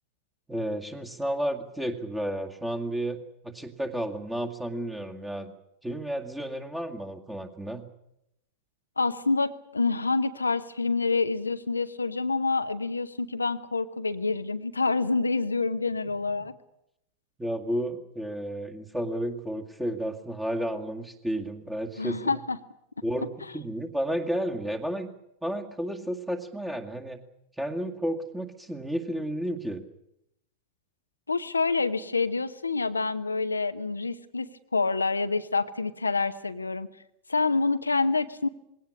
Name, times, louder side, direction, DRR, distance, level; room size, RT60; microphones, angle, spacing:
voice 1, 0.5-3.2 3.4-5.5 5.8-7.8 17.4-22.4 23.0-25.1 25.4-27.2 27.6-29.8, right 1 dB, 5° right, 3 dB, 2.1 m, -32 dB
voice 2, 9.0-16.5 22.0-22.6 31.3-36.9 37.3-38.5, left 3 dB, 80° left, 11 dB, 1.0 m, -27 dB
21.0 x 17.5 x 9.9 m, 0.81 s
figure-of-eight pair, 90°, 0 cm